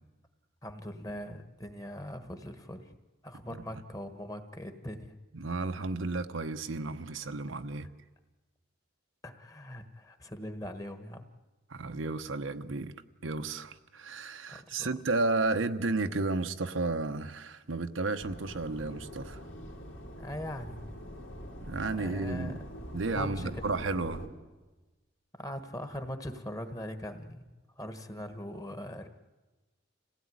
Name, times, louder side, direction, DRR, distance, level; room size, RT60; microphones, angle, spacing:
voice 1, 0.6-2.9 3.2-5.1 9.2-11.2 14.5-14.9 20.2-20.8 22.0-22.5 23.1-23.5 25.4-27.5 27.8-29.1, equal, 20° left, 1.4 m, -41 dB
voice 2, 5.3-7.9 11.7-12.9 13.2-19.4 21.6-22.6 22.9-24.2, right 3 dB, 90° right, 1.0 m, -32 dB
sound 1, 18.2-24.3, equal, 85° left, 3.6 m, -44 dB
26.5 x 16.5 x 9.6 m
head